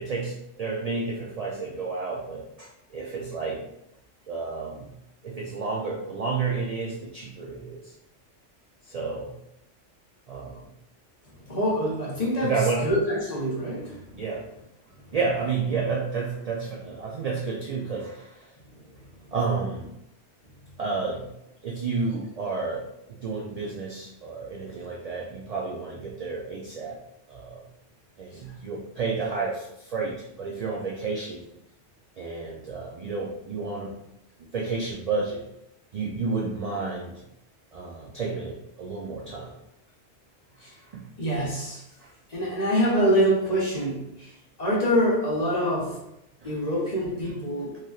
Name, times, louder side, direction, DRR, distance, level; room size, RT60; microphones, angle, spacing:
voice 1, 0.0-3.6 4.3-4.9 5.2-7.9 8.8-9.3 10.3-10.7 12.4-12.9 14.1-14.5 15.1-18.5 19.3-19.9 20.8-21.3 21.6-27.0 27.3-27.6 28.2-31.5 32.2-33.9 34.4-35.4 35.9-37.2 37.7-39.5 40.8-41.1 42.0-42.1 46.4-46.6, right 4 dB, 75° right, -3 dB, 0.3 m, -31 dB
voice 2, 11.4-12.5 12.8-14.2 40.6-40.7 41.2-41.8 42.3-44.3 44.6-46.0 46.4-47.8, equal, 40° left, -5 dB, 0.8 m, -25 dB
3.2 x 2.7 x 2.3 m, 0.83 s
omnidirectional pair, 1.2 m